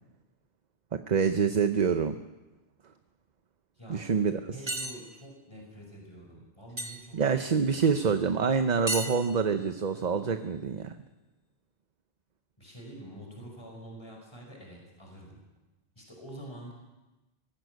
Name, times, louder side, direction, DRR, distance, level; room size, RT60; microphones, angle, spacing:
voice 1, 0.9-2.2 3.9-4.4 7.1-11.0, right 6 dB, 45° right, 9 dB, 0.9 m, -26 dB
voice 2, 3.8-4.1 4.5-8.0 12.6-15.4 16.0-16.7, right 1 dB, 25° left, 0 dB, 5.3 m, -47 dB
sound 1, 4.7-5.0 6.8-7.0 8.9-9.7, right 1 dB, 25° right, 1.7 m, -33 dB
19.0 x 16.0 x 9.2 m, 1.1 s
omnidirectional pair, 1.0 m